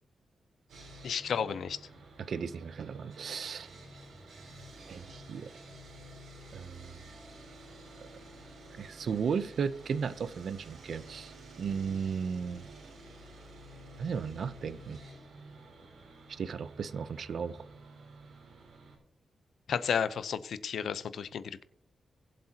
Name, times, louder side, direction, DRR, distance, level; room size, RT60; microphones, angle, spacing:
Sawing, 0.7-19.0, right 2 dB, 90° right, 3.7 m, -51 dB
voice 1, 1.0-1.8 19.7-21.6, left 7 dB, 70° left, 0.7 m, -32 dB
voice 2, 2.2-3.7 4.9-5.5 6.5-7.0 8.8-12.6 14.0-15.0 16.3-17.6, right 6 dB, 55° right, 0.6 m, -35 dB
21.0 x 7.6 x 2.9 m
wide cardioid pair, 175°, 0 cm